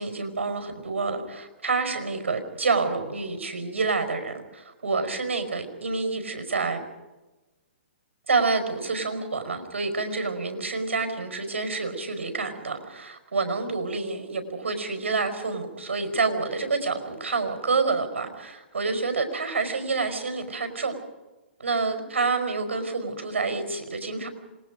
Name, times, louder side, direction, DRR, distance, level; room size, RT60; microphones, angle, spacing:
voice 1, 0.0-6.8 8.3-20.9 21.6-24.3, right 4 dB, 85° right, 7 dB, 5.1 m, -28 dB
27.0 x 21.0 x 5.2 m, 1.1 s
hypercardioid pair, 145°, 7 cm